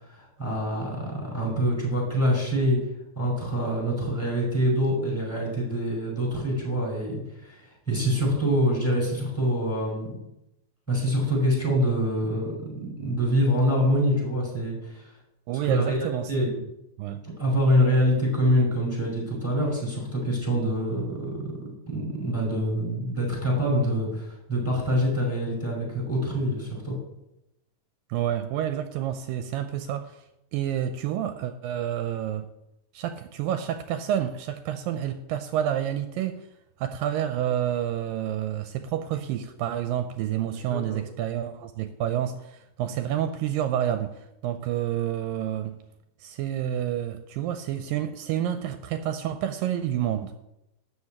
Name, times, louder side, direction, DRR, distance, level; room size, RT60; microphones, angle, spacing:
voice 1, 0.1-2.8 3.1-10.1 10.9-15.1 15.6-16.5 17.4-26.9 40.7-41.0, equal, 5° left, -2 dB, 4.9 m, -25 dB
voice 2, 15.5-16.5 17.0-17.2 28.1-30.2 30.5-32.5 32.9-36.5 36.8-45.8 46.2-50.4, right 10 dB, 80° right, 9 dB, 2.2 m, -29 dB
12.5 x 5.1 x 8.5 m, 0.87 s
omnidirectional pair, 4.1 m